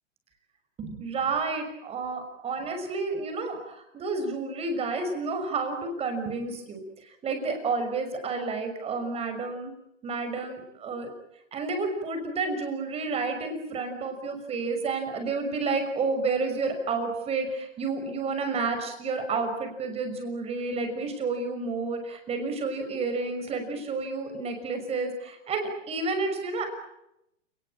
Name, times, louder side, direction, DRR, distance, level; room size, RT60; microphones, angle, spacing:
voice 1, 0.8-6.8 7.2-9.7 10.0-11.1 11.5-26.7, right 4 dB, 15° right, 6 dB, 6.0 m, -30 dB
30.0 x 20.0 x 8.9 m, 0.82 s
hypercardioid pair, 150°, 38 cm